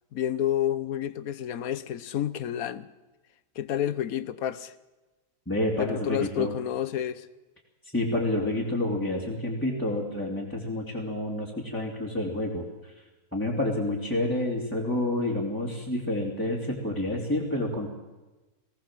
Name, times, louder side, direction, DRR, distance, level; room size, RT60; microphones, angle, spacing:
voice 1, 0.1-2.9 3.6-4.7 5.8-7.3, left 10 dB, 70° left, 1.2 m, -29 dB
voice 2, 5.5-6.6 7.8-13.0 13.3-17.9, left 1 dB, 10° left, 2.8 m, -29 dB
20.0 x 17.5 x 7.5 m
omnidirectional pair, 1.6 m